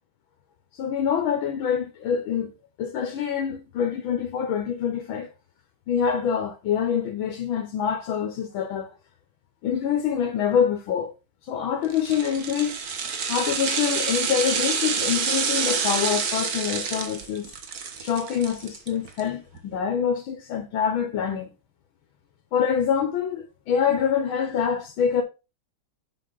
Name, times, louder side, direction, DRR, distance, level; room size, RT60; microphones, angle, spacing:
voice 1, 0.7-2.5 2.8-5.3 5.9-8.9 9.6-11.1 11.4-12.8 13.3-17.5 18.0-21.5 22.5-25.2, left 8 dB, 90° left, 1.8 m, -25 dB
sound 1, 11.9-19.2 19.5-19.6, right 6 dB, 55° right, 1.5 m, -28 dB
7.6 x 6.2 x 3.7 m
omnidirectional pair, 2.1 m